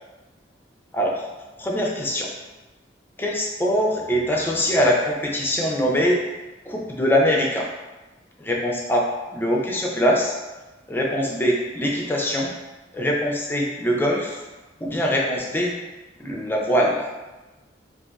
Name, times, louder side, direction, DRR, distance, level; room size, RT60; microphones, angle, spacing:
voice 1, 1.6-2.3 3.2-6.2 6.7-7.7 8.4-9.0 9.3-10.3 10.9-12.5 12.9-14.4 14.8-15.7 16.2-16.9, equal, 10° left, -2 dB, 0.5 m, -22 dB
4.2 x 2.5 x 2.3 m, 1.1 s
head